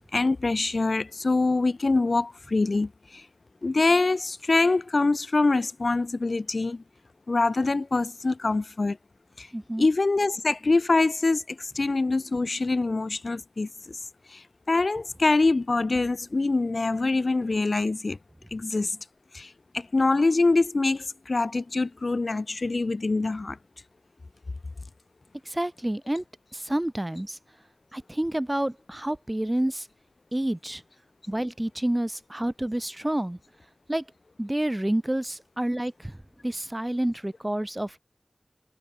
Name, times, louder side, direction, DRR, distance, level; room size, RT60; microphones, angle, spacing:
voice 1, 0.0-3.3 3.6-6.8 7.3-9.0 9.4-9.5 9.8-14.0 14.3-18.2 18.5-19.0 19.3-23.6, left 3 dB, 90° left, 5.0 m, -24 dB
voice 2, 9.5-9.9 25.5-26.2 26.5-27.4 27.9-29.9 30.3-30.8 31.3-33.4 33.9-34.0 34.4-36.2 36.4-38.0, right 1 dB, 25° right, 2.5 m, -29 dB
wide cardioid pair, 45°, 0 cm